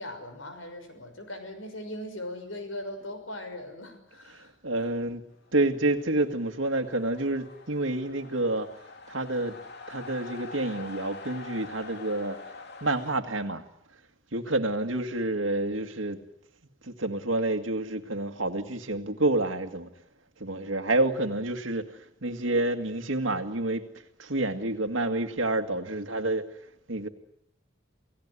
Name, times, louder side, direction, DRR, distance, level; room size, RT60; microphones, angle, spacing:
voice 1, 0.0-4.5, left 1 dB, 85° left, 6.1 m, -39 dB
voice 2, 4.3-8.7 9.1-9.6 9.9-12.4 12.8-13.6 14.3-16.2 16.8-19.9 20.4-23.9 24.2-26.5 26.9-27.1, right 2 dB, 75° right, 2.1 m, -28 dB
sound 1, 5.5-13.2, left 4 dB, 60° left, 2.8 m, -45 dB
28.5 x 17.0 x 9.9 m
head